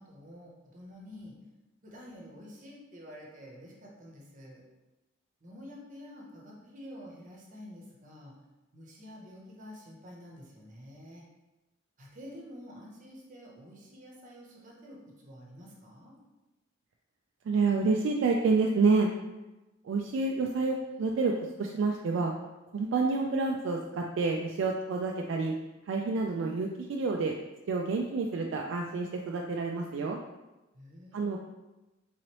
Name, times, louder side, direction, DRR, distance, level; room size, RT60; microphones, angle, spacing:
voice 1, 0.0-1.3 1.8-4.6 5.4-8.3 8.7-11.2 12.0-16.1 30.7-31.3, equal, 40° right, -2 dB, 0.8 m, -49 dB
voice 2, 17.5-19.1 19.8-22.3 22.7-25.5 25.9-27.3 27.7-30.2 31.1-31.4, right 4 dB, 65° right, 1 dB, 0.3 m, -28 dB
3.8 x 3.1 x 2.9 m, 1.1 s
head